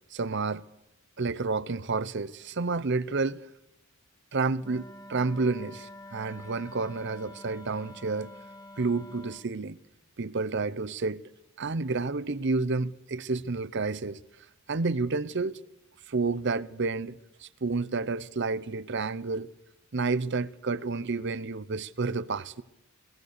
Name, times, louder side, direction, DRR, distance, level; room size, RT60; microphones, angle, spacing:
voice 1, 0.1-0.6 1.2-3.4 4.3-8.3 8.8-9.8 10.2-11.2 11.6-14.2 14.7-15.6 16.1-19.5 19.9-22.6, right 3 dB, 55° right, 0.7 m, -30 dB
Wind instrument woodwind instrument, 4.6-9.5, left 1 dB, 15° left, 0.8 m, -47 dB
22.0 x 19.0 x 6.7 m
head